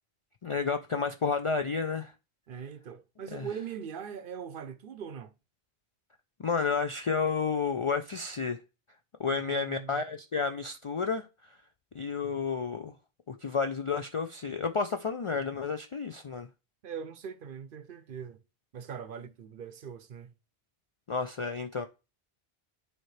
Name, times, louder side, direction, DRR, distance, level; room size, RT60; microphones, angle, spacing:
voice 1, 0.4-2.1 3.3-3.5 6.4-8.6 9.2-11.3 11.9-12.9 13.3-16.5 21.1-21.9, left 5 dB, 55° left, 0.3 m, -31 dB
voice 2, 2.5-5.3 9.3-10.0 16.8-18.4 18.7-20.3, right 7 dB, 60° right, 0.7 m, -41 dB
9.2 x 4.4 x 3.2 m
omnidirectional pair, 1.1 m